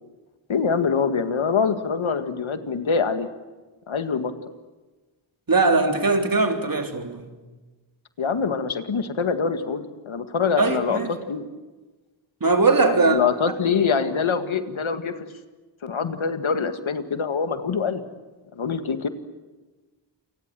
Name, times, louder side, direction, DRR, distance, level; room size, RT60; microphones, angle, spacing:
voice 1, 0.5-3.3 3.9-4.3 8.2-11.4 12.8-15.3 15.8-18.0 18.5-19.1, left 5 dB, 85° left, 2.0 m, -24 dB
voice 2, 5.5-7.3 10.6-11.1 12.4-13.2, right 3 dB, 45° right, 3.5 m, -20 dB
28.5 x 25.0 x 7.7 m
wide cardioid pair, 80°, 46 cm